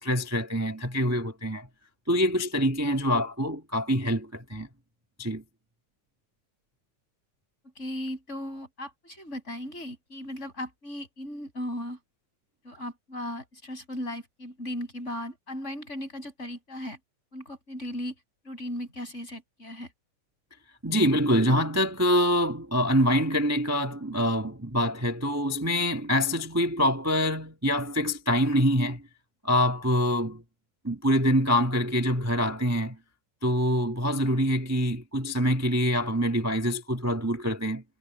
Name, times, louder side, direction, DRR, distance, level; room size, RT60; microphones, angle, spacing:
voice 1, 0.0-1.7 2.1-4.7 5.2-5.4 20.8-29.0 29.4-30.4 30.8-33.0 33.4-37.8, equal, 10° right, 0.7 m, -25 dB
voice 2, 7.8-12.0 12.6-17.0 17.3-18.1 18.4-19.9, left 1 dB, 20° left, 8.4 m, -37 dB
omnidirectional pair, 3.3 m